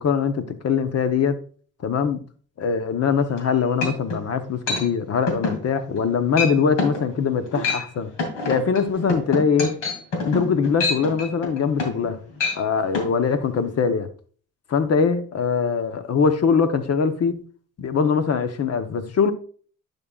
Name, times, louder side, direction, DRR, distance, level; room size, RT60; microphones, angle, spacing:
voice 1, 0.0-1.4 1.8-2.2 2.6-8.1 8.5-9.8 10.2-12.2 12.5-14.1 14.7-17.3 17.8-19.3, left 6 dB, 55° left, 0.9 m, -22 dB
sound 1, 3.4-3.5 3.8-4.2 4.7-4.9 5.3-5.6 5.9-6.1 6.4-6.5 6.8-7.0 7.5-7.9 8.2-12.1 12.4-12.6 12.9-13.1, left 3 dB, 85° left, 2.5 m, -26 dB
10.5 x 5.4 x 2.4 m
cardioid pair, 90°, 30 cm